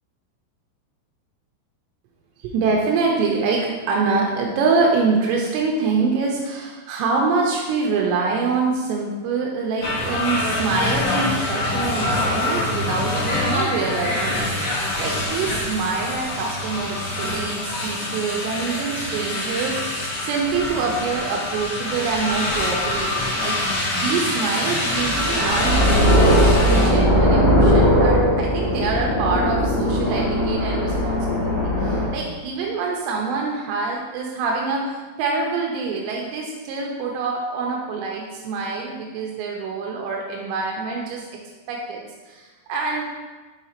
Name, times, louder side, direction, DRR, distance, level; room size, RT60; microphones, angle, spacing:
voice 1, 2.4-41.3 41.7-42.0 42.3-43.0, right 4 dB, 85° right, -1 dB, 2.8 m, -25 dB
sound 1, 9.8-26.9, left 2 dB, 75° left, 1.4 m, -25 dB
sound 2, 24.9-32.1, equal, 45° left, 2.0 m, -19 dB
7.0 x 4.9 x 2.8 m, 1.3 s
omnidirectional pair, 5.0 m